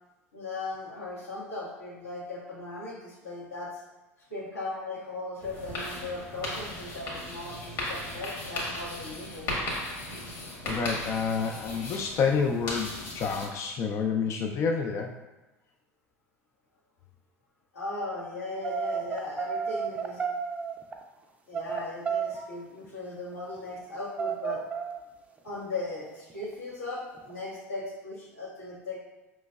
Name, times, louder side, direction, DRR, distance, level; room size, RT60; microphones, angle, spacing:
voice 1, 0.3-3.8 4.3-9.5 17.7-20.2 21.5-24.6 25.4-29.0, left 2 dB, 85° left, -7 dB, 1.4 m, -37 dB
sound 1, 5.4-13.5, left 1 dB, 55° left, 1.4 m, -36 dB
voice 2, 10.6-15.1, left 5 dB, 40° left, 3 dB, 0.3 m, -28 dB
sound 2, 18.6-21.0 21.5-22.5 22.8-22.9 23.2-23.9 24.2-25.0 25.4-25.6 26.2-26.5 27.1-27.4, right 6 dB, 20° right, 0.5 m, -32 dB
5.1 x 3.0 x 2.2 m, 1.1 s
hypercardioid pair, 80°, 8 cm